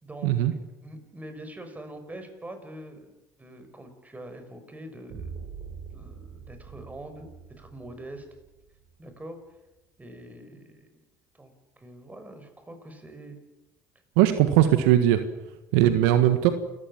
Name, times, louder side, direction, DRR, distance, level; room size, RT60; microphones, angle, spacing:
voice 1, 0.0-0.3 0.8-5.3 5.9-7.3 7.6-8.2 9.0-9.4 10.0-11.0 11.3-13.4, right 1 dB, 15° right, 7 dB, 6.1 m, -44 dB
sound 1, 5.1-9.1, right 6 dB, 55° right, 6.8 m, -43 dB
voice 2, 14.2-15.2 15.7-16.5, right 12 dB, 75° right, 10 dB, 1.5 m, -19 dB
29.0 x 15.5 x 7.4 m, 1.0 s
hypercardioid pair, 70°, 9 cm